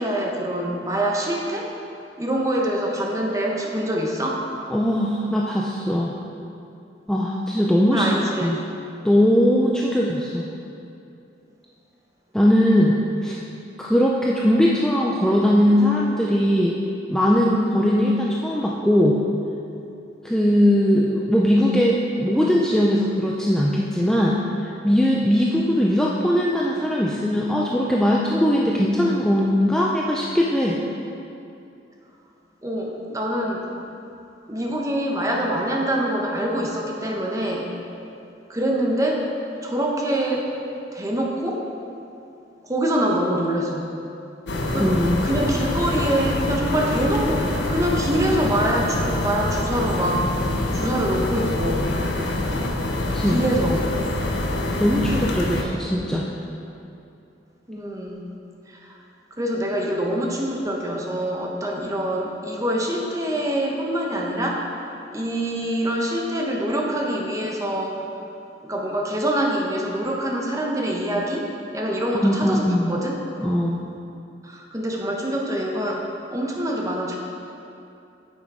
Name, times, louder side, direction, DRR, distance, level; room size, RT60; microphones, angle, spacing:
voice 1, 0.0-1.7 2.2-4.4 7.8-8.6 22.4-22.5 32.6-33.8 34.5-37.7 38.5-39.3 39.6-40.5 40.9-41.7 42.6-43.9 44.7-44.9 45.2-50.3 50.7-51.9 53.3-53.9 57.7-58.2 58.7-59.0 59.4-64.7 65.1-68.0 68.6-71.5 71.7-73.2 74.4-77.2, right 1 dB, 20° right, -1 dB, 1.0 m, -25 dB
voice 2, 4.7-6.1 7.1-8.1 8.4-8.6 9.0-10.4 12.3-13.4 13.8-16.8 17.1-19.2 20.2-30.8 44.8-45.2 53.1-53.4 54.8-56.3 72.1-73.0 73.4-73.8, equal, 5° left, -3 dB, 0.4 m, -20 dB
sound 1, 44.5-55.6, left 1 dB, 75° left, 0.8 m, -25 dB
8.8 x 6.4 x 4.8 m, 2.7 s
head